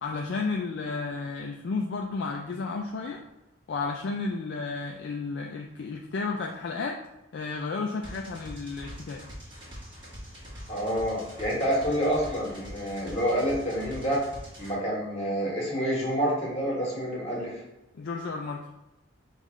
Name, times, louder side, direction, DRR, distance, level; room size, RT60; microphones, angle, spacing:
voice 1, 0.0-3.2 3.7-7.0 7.3-9.2 17.9-18.7, left 4 dB, 55° left, 1 dB, 0.3 m, -32 dB
sound 1, 8.0-14.7, equal, 25° right, 1.1 m, -44 dB
voice 2, 10.7-14.2 14.6-17.6, equal, 30° left, -4 dB, 1.3 m, -28 dB
5.2 x 2.4 x 3.1 m, 0.93 s
head